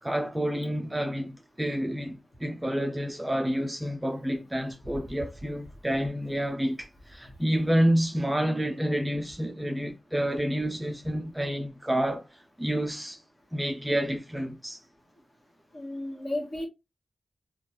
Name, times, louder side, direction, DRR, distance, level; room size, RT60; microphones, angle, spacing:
voice 1, 0.0-13.2 13.5-14.8, equal, 10° right, 0.3 m, -29 dB
voice 2, 15.7-16.7, left 1 dB, 45° left, 1.2 m, -33 dB
3.3 x 2.2 x 2.9 m
wide cardioid pair, 175°, 0 cm